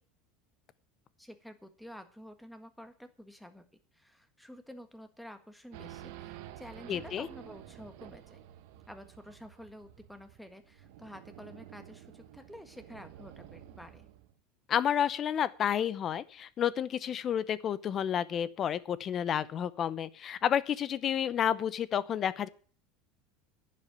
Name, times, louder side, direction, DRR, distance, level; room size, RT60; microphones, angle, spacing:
voice 1, 1.2-3.6 3.9-8.4 8.9-14.1, equal, ahead, 8 dB, 1.6 m, -50 dB
Race car auto racing / Idling / Accelerating revving vroom, 5.7-14.3, right 12 dB, 70° right, 1.1 m, -50 dB
voice 2, 6.9-7.3 14.7-22.5, left 9 dB, 35° left, 17 dB, 0.8 m, -30 dB
10.5 x 7.7 x 8.9 m, 0.43 s
supercardioid pair, 135°, 0 cm